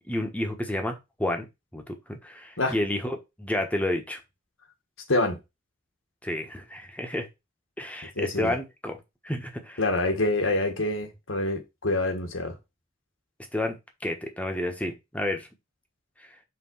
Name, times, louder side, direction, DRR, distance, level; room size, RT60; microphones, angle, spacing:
voice 1, 0.1-1.5 1.7-4.2 6.2-7.3 7.8-9.8 13.5-15.5 16.2-16.3, left 1 dB, 5° left, 1.3 m, -31 dB
voice 2, 8.2-8.5 9.8-12.5, left 2 dB, 75° left, 1.9 m, -26 dB
5.8 x 3.8 x 5.5 m
head